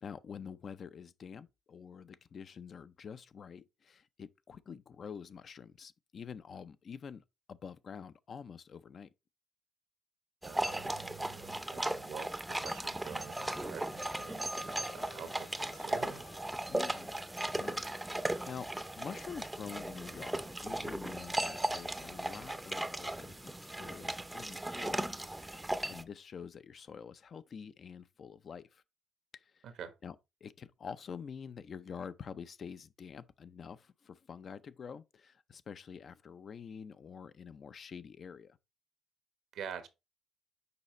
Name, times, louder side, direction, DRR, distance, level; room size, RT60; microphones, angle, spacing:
voice 1, 0.0-9.1 16.7-17.1 17.5-18.7 19.0-25.6 25.8-28.8 29.3-29.6 30.0-30.2 30.4-38.6, left 6 dB, 50° left, 0.5 m, -47 dB
sound 1, 10.4-26.0, right 1 dB, 10° right, 0.6 m, -37 dB
voice 2, 10.4-16.2 29.6-29.9 39.5-39.9, right 7 dB, 80° right, 1.2 m, -47 dB
sound 2, 14.5-20.9, left 5 dB, 90° left, 1.9 m, -59 dB
6.8 x 4.9 x 3.1 m
cardioid pair, 90°, 0 cm